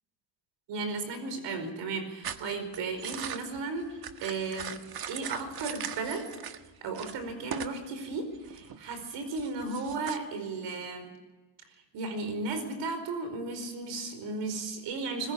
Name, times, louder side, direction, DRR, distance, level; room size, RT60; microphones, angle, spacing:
voice 1, 0.7-4.8 5.1-6.3 6.8-11.1 11.9-15.3, right 3 dB, 85° right, 8 dB, 5.0 m, -35 dB
sound 1, 2.2-6.7 6.9-7.8 8.1-10.2, right 8 dB, 60° right, 1.6 m, -40 dB
21.0 x 20.5 x 8.8 m, 1.2 s
cardioid pair, 90°, 42 cm